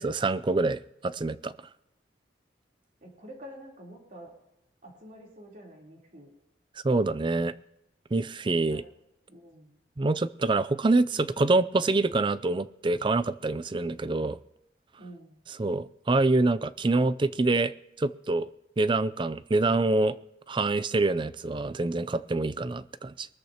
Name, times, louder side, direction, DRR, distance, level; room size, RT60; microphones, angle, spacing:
voice 1, 0.0-1.5 6.8-7.5 8.1-8.8 10.0-14.4 15.6-17.7 18.0-18.5 18.8-20.1 20.5-23.3, right 2 dB, 25° right, 15 dB, 0.4 m, -26 dB
voice 2, 3.0-4.3 4.8-6.3 8.7-8.8 9.3-9.8 15.0-15.4, equal, 45° right, -2 dB, 3.6 m, -47 dB
23.0 x 13.5 x 2.9 m, 0.85 s
head